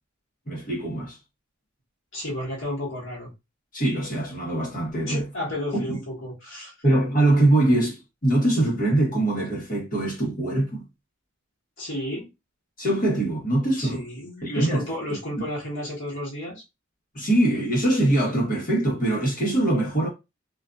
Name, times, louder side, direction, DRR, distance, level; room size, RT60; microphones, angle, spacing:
voice 1, 0.5-1.2 3.7-5.2 5.7-5.8 6.8-10.8 12.8-14.0 14.4-14.8 15.4-15.5 17.1-20.1, right 1 dB, 45° left, 1.3 m, -23 dB
voice 2, 2.1-3.3 4.9-6.7 11.8-12.3 13.8-16.6, left 1 dB, 70° left, 1.3 m, -32 dB
2.6 x 2.5 x 2.3 m
head